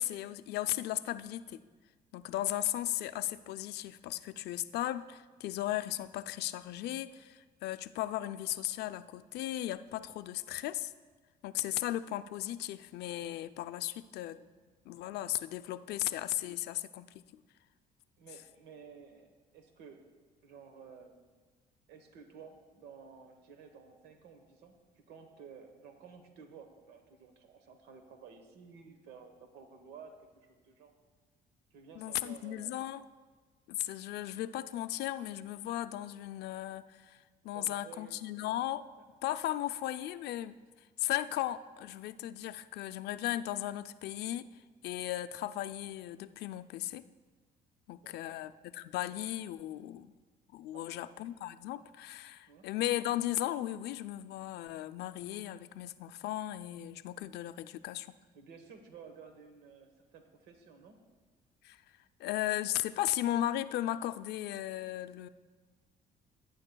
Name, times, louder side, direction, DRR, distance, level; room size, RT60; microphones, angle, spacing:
voice 1, 0.0-1.6 2.1-10.9 11.4-14.4 14.9-17.1 31.9-33.0 33.7-37.2 37.4-38.9 39.2-40.6 41.0-44.5 44.8-47.1 47.9-50.1 50.5-58.1 61.6-61.8 62.2-65.3, left 14 dB, 75° left, 12 dB, 0.4 m, -36 dB
voice 2, 18.2-20.1 20.4-21.1 21.9-24.8 25.1-30.9 31.7-32.7 37.5-38.1 48.0-48.4 50.7-51.2 52.5-52.7 58.3-61.0 62.2-62.3, right 6 dB, 80° right, 6 dB, 1.1 m, -53 dB
18.0 x 9.5 x 2.3 m, 1.4 s
cardioid pair, 110°, 17 cm